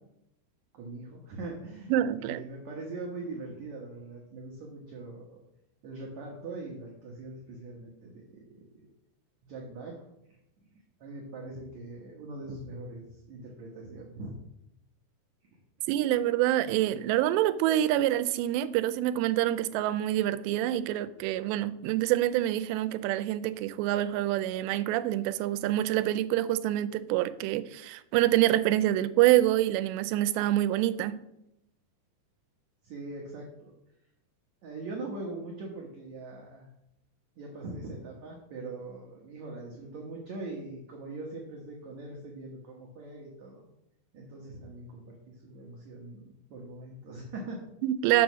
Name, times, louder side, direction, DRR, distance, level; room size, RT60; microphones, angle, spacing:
voice 1, 0.7-1.9 2.2-5.4 5.8-8.9 9.4-10.0 10.7-14.4 15.5-15.6 32.8-33.7 34.6-36.7 37.4-43.7 44.1-47.6, right 2 dB, 70° right, 1.7 m, -42 dB
voice 2, 1.9-2.4 15.9-31.2 47.8-48.2, right 13 dB, 85° right, 2.7 m, -26 dB
7.3 x 6.3 x 6.1 m
omnidirectional pair, 4.9 m